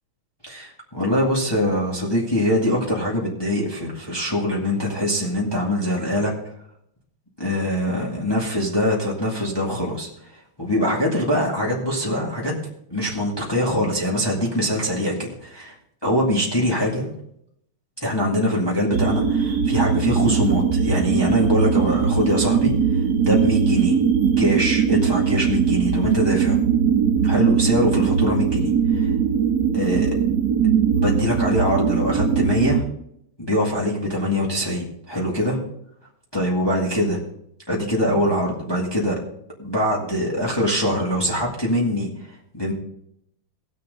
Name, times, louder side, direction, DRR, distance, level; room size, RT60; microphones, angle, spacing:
voice 1, 0.4-6.3 7.4-10.1 10.6-12.5 12.9-15.7 16.0-17.1 18.0-24.0 24.4-26.6 27.2-29.1 29.7-30.2 30.9-32.8 33.4-35.6 36.3-37.2 37.7-39.2 39.6-42.1 42.5-42.7, equal, 10° left, -3 dB, 1.8 m, -23 dB
sound 1, 18.9-32.8, right 7 dB, 55° right, 1.3 m, -20 dB
19.0 x 6.6 x 3.7 m, 0.74 s
omnidirectional pair, 2.4 m